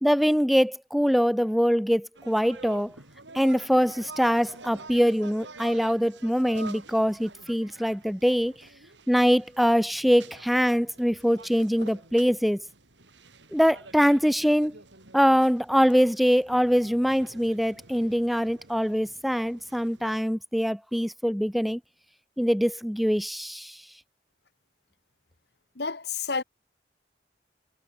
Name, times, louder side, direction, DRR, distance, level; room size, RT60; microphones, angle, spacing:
voice 1, 0.0-3.0 3.3-8.7 9.1-12.6 13.5-14.7 15.1-21.8 22.4-23.8, equal, ahead, 0.8 m, -23 dB
sound 1, 2.2-20.2, right 3 dB, 90° right, 6.3 m, -48 dB
voice 2, 25.8-26.4, left 5 dB, 65° left, 1.6 m, -30 dB
head